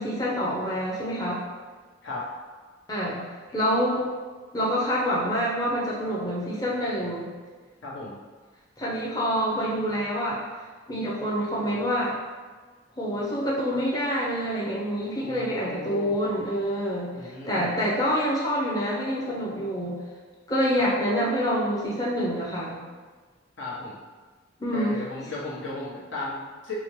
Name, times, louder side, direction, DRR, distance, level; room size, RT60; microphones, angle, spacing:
voice 1, 0.0-1.4 2.9-3.3 3.5-4.0 4.5-7.3 8.8-10.4 10.9-12.1 13.0-20.0 20.5-22.8 24.6-25.0, equal, 20° left, -6 dB, 0.6 m, -27 dB
voice 2, 7.8-8.2 15.2-16.1 17.1-17.7 20.8-20.9 23.6-24.0 24.7-26.7, left 2 dB, 75° left, -6 dB, 1.0 m, -36 dB
4.9 x 2.1 x 3.1 m, 1.4 s
head